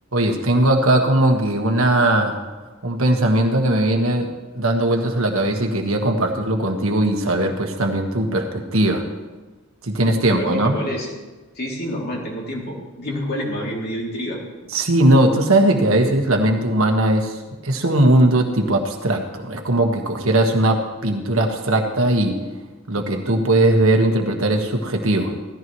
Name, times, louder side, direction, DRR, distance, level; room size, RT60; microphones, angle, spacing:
voice 1, 0.1-2.4 2.8-4.3 4.5-9.0 9.8-10.8 14.7-22.4 22.9-25.4, right 1 dB, 70° right, 3 dB, 1.6 m, -19 dB
voice 2, 10.3-11.1 11.6-14.4, equal, 50° left, -3 dB, 2.9 m, -28 dB
17.0 x 14.0 x 3.2 m, 1.2 s
head